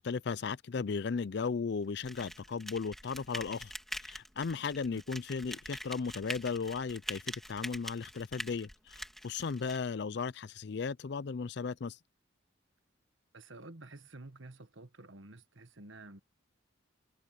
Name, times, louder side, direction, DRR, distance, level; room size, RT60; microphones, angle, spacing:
voice 1, 0.0-3.7 4.1-12.0, left 5 dB, 55° left, 0.4 m, -36 dB
sound 1, 2.0-9.8, equal, ahead, 2.2 m, -44 dB
voice 2, 13.3-16.2, right 2 dB, 75° right, 1.5 m, -50 dB
head